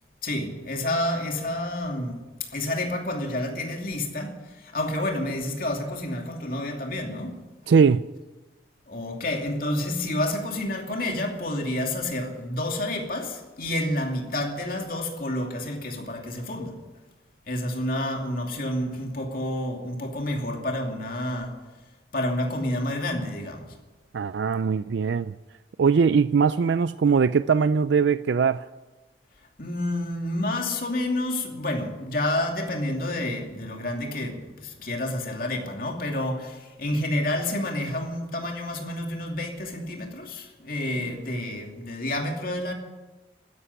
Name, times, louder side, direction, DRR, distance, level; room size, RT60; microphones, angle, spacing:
voice 1, 0.2-2.2 2.5-4.4 4.7-7.3 8.9-16.7 17.5-21.5 22.1-23.7 29.6-42.7, left 1 dB, 50° left, 2.6 m, -29 dB
voice 2, 7.7-8.1 24.1-25.4 25.8-28.7, right 5 dB, 80° right, 0.4 m, -21 dB
13.0 x 11.0 x 9.9 m
head